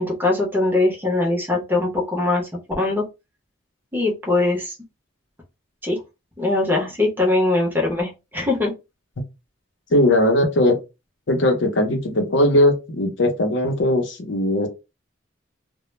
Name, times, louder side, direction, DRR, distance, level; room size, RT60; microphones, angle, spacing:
voice 1, 0.0-2.5 2.8-3.0 3.9-4.8 5.8-6.0 6.4-8.7, left 2 dB, 10° right, 0.6 m, -21 dB
voice 2, 9.9-10.8 11.3-14.7, left 1 dB, 70° left, 0.6 m, -19 dB
2.1 x 2.0 x 3.0 m
head